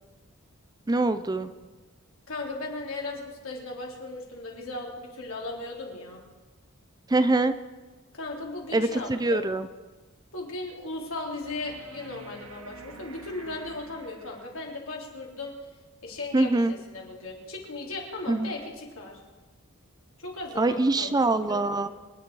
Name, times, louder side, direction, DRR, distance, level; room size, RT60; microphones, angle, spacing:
voice 1, 0.9-1.5 7.1-7.5 8.7-9.7 16.3-16.7 18.3-18.5 20.6-21.9, right 2 dB, 20° right, 11 dB, 0.5 m, -24 dB
voice 2, 2.3-6.2 8.1-9.5 10.3-15.5 16.0-19.2 20.2-21.9, left 2 dB, 70° left, -1 dB, 3.5 m, -37 dB
sound 1, 11.4-14.8 17.4-17.5, right 2 dB, 85° right, 1.3 m, -48 dB
26.5 x 10.0 x 4.7 m, 1.3 s
head